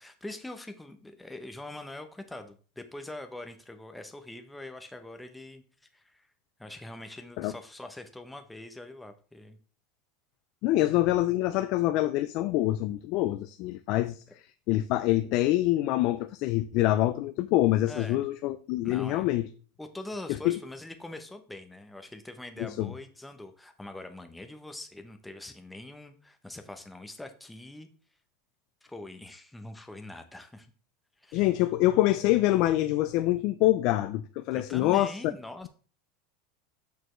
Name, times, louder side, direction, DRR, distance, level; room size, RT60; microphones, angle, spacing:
voice 1, 0.0-5.6 5.9-6.3 6.6-9.6 17.9-18.3 18.8-19.3 19.8-27.9 28.8-30.7 31.2-31.5 34.5-35.7, left 2 dB, 5° left, 0.6 m, -43 dB
voice 2, 10.6-14.2 14.7-19.5 20.4-20.6 22.6-22.9 31.3-35.1, left 15 dB, 45° left, 0.3 m, -25 dB
6.6 x 6.5 x 3.1 m
supercardioid pair, 165°, 0 cm